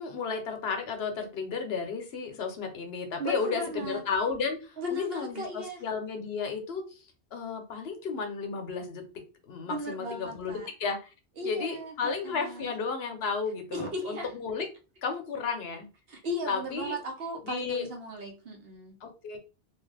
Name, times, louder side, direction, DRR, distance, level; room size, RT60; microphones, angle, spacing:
voice 1, 0.0-9.0 9.5-11.1 11.4-14.7 15.0-15.9 16.5-17.0 17.4-17.9 19.0-19.4, left 5 dB, 70° left, 5 dB, 0.9 m, -33 dB
voice 2, 3.2-4.0 4.8-5.8 9.6-10.7 11.4-12.8 13.7-14.3 16.1-19.0, equal, 65° right, 3 dB, 1.0 m, -36 dB
2.9 x 2.3 x 3.2 m, 0.32 s
omnidirectional pair, 1.1 m